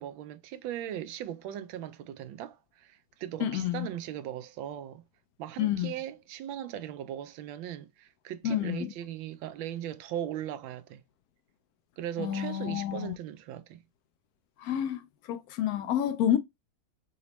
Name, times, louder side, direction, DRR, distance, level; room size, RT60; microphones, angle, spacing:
voice 1, 0.0-5.0 5.4-11.0 12.0-13.8, right 11 dB, 80° right, 1.3 m, -38 dB
voice 2, 3.4-3.9 5.6-5.9 8.4-8.9 12.2-13.1 14.6-15.0 15.3-16.4, left 10 dB, 80° left, 0.8 m, -29 dB
4.1 x 3.0 x 2.9 m
omnidirectional pair, 2.1 m